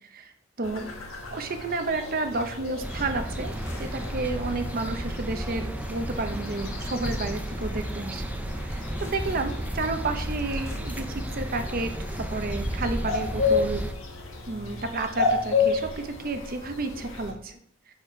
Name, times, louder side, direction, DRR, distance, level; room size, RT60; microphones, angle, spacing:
sound 1, 0.6-17.3, left 4 dB, 85° left, 1.3 m, -33 dB
voice 1, 0.6-0.9 1.3-8.3 8.6-11.9 12.2-13.8 14.5-17.6, right 3 dB, 45° right, 7 dB, 0.8 m, -31 dB
sound 2, 2.8-13.9, right 1 dB, 10° right, 0.4 m, -33 dB
sound 3, 3.4-4.9 5.8-7.3 8.7-9.2 10.5-11.1, left 1 dB, 15° left, 1.0 m, -48 dB
7.4 x 4.2 x 4.4 m, 0.65 s
head